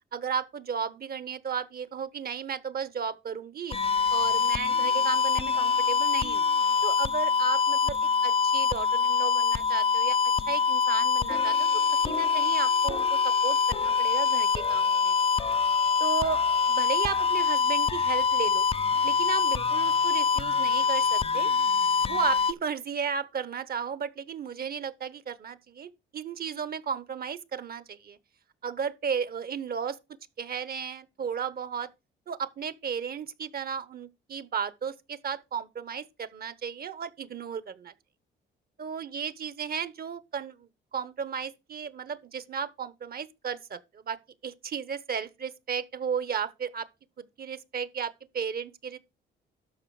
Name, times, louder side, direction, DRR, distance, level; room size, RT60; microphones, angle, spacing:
voice 1, 0.1-3.8 4.1-6.5 6.8-10.2 10.5-11.7 12.0-15.2 16.0-16.4 16.7-18.7 19.0-21.5 22.1-28.2 28.6-30.0 30.4-31.9 32.3-37.9 38.8-44.2 44.4-46.9 47.2-49.0, right 7 dB, 50° right, 1.0 m, -34 dB
sound 1, 3.7-22.5, left 5 dB, 30° left, 0.5 m, -25 dB
12.5 x 5.0 x 4.8 m
cardioid pair, 90°, 20 cm